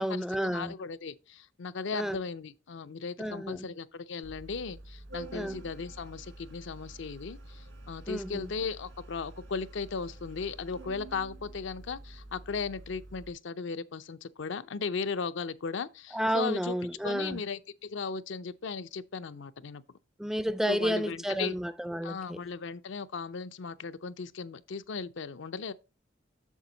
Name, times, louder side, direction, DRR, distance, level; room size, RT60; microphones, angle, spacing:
voice 1, 0.0-0.7 1.9-2.2 3.2-3.7 5.3-5.6 8.1-8.5 16.1-17.4 20.2-22.4, equal, ahead, 0.4 m, -31 dB
voice 2, 0.5-16.7 17.0-19.8 20.7-21.6 22.0-25.7, left 5 dB, 65° left, 0.5 m, -37 dB
Organ, 4.2-13.3, right 2 dB, 75° right, 2.0 m, -48 dB
7.3 x 6.8 x 3.9 m
head